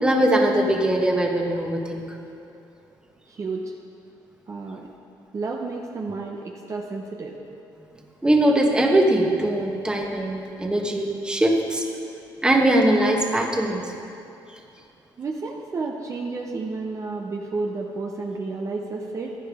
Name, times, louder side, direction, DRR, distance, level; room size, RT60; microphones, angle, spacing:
voice 1, 0.0-2.1 8.2-11.8 12.4-13.9, right 1 dB, 10° right, 1 dB, 1.3 m, -21 dB
voice 2, 3.3-3.7 4.5-4.9 5.3-7.4 15.2-19.4, right 3 dB, 40° right, 1 dB, 0.8 m, -31 dB
15.0 x 10.5 x 3.6 m, 2.7 s
cardioid pair, 100°, 8 cm